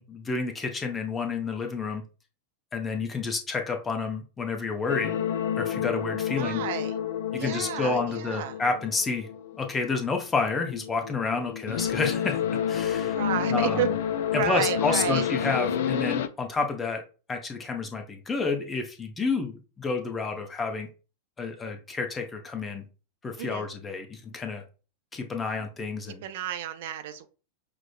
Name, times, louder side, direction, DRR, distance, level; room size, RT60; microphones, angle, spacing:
voice 1, 0.0-2.0 2.7-5.2 5.6-6.6 7.3-9.3 9.6-12.4 12.7-13.2 13.5-13.8 14.5-17.0 17.3-20.9 21.4-22.8 23.2-24.6 25.1-26.2, left 4 dB, 20° left, 0.6 m, -30 dB
sound 1, 4.9-10.2 10.5-16.3, left 9 dB, 55° left, 0.3 m, -29 dB
voice 2, 6.4-7.0 7.4-8.6 13.1-13.9 14.3-15.3 23.4-23.7 26.1-27.3, right 10 dB, 55° right, 0.3 m, -31 dB
5.9 x 2.0 x 2.2 m
figure-of-eight pair, 90°, 0 cm